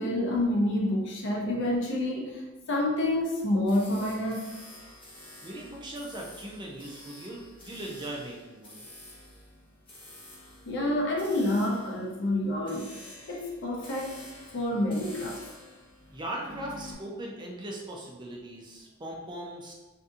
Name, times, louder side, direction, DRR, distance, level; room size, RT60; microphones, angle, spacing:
voice 1, 0.0-4.6 10.7-13.0 13.3-14.3 14.5-15.4, left 1 dB, 55° left, -1 dB, 0.5 m, -28 dB
sound 1, 3.7-16.9, left 1 dB, 25° left, 0.9 m, -49 dB
voice 2, 5.4-8.8 16.1-19.7, right 1 dB, 20° right, -2 dB, 0.4 m, -39 dB
2.6 x 2.6 x 2.4 m, 1.1 s
head